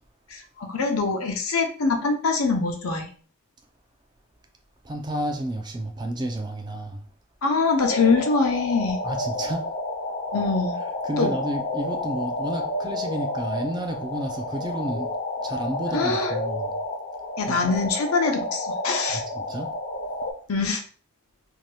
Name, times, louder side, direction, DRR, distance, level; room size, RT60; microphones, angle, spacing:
voice 1, 0.3-3.1 7.4-9.0 10.3-10.8 11.2-11.3 15.9-16.3 17.4-19.2 20.5-20.8, left 4 dB, 85° left, 0.6 m, -24 dB
voice 2, 4.8-7.0 9.0-9.7 11.0-15.1 15.4-16.7 17.5-17.8 19.1-19.7, right 1 dB, 20° right, 0.3 m, -31 dB
sound 1, 7.8-20.3, left 2 dB, 35° left, 0.5 m, -30 dB
2.7 x 2.2 x 3.2 m
head